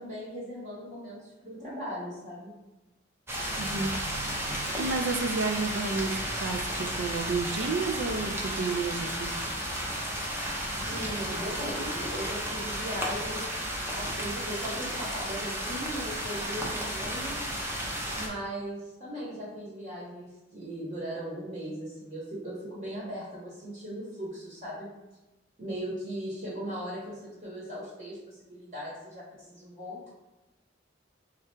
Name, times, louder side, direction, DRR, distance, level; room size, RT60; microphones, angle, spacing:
voice 1, 0.0-2.5 10.8-17.5 18.1-24.9 25.6-30.1, equal, 40° right, -7 dB, 1.1 m, -38 dB
sound 1, 3.3-18.3, equal, 15° right, 0.6 m, -33 dB
voice 2, 3.6-3.9 4.8-9.4, right 4 dB, 70° right, 6 dB, 0.4 m, -31 dB
3.3 x 2.4 x 4.4 m, 1.0 s
head